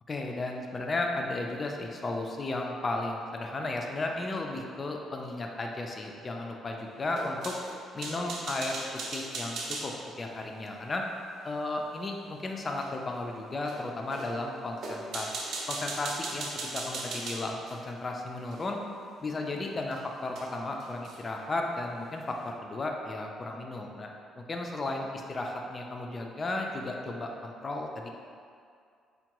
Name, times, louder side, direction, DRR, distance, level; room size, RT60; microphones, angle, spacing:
voice 1, 0.1-7.6 7.9-8.8 9.1-11.1 11.4-15.3 15.7-16.5 16.7-18.8 19.2-24.1 24.4-28.1, left 2 dB, 25° left, 1 dB, 0.3 m, -34 dB
sound 1, 7.1-9.9 12.8-12.9 13.7-13.8 14.1-14.3 14.8-17.8 18.5-18.7 19.9-20.0 20.4-20.5 20.8-21.3, right 2 dB, 60° right, 0.5 m, -38 dB
4.4 x 2.2 x 2.9 m, 2.3 s
cardioid pair, 160°, 0 cm